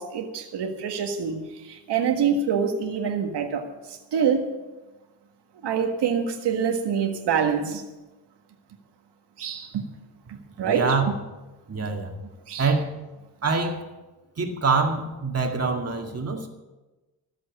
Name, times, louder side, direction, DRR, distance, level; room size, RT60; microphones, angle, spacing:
voice 1, 0.0-4.5 5.6-7.8 9.4-9.9 10.6-11.0 11.8-11.9 12.5-12.7, right 6 dB, 85° right, 4 dB, 1.7 m, -26 dB
voice 2, 10.6-11.1 11.7-12.1 12.6-13.0 13.4-13.8 14.4-16.5, right 4 dB, 35° right, 3 dB, 2.2 m, -25 dB
14.0 x 7.7 x 8.4 m, 1.1 s
cardioid pair, 95°, 40 cm